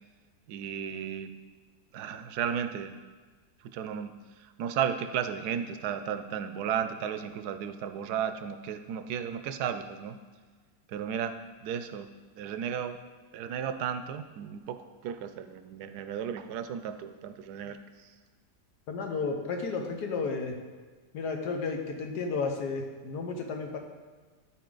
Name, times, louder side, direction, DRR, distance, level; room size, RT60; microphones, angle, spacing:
voice 1, 0.5-1.3 1.9-2.9 3.7-4.1 4.4-10.2 10.9-11.3 11.6-12.1 12.4-13.0 13.3-18.1, right 8 dB, 80° right, 9 dB, 1.1 m, -34 dB
voice 2, 18.9-20.6 21.1-23.8, left 4 dB, 85° left, 3 dB, 1.5 m, -32 dB
12.0 x 4.6 x 3.8 m, 1.4 s
omnidirectional pair, 1.7 m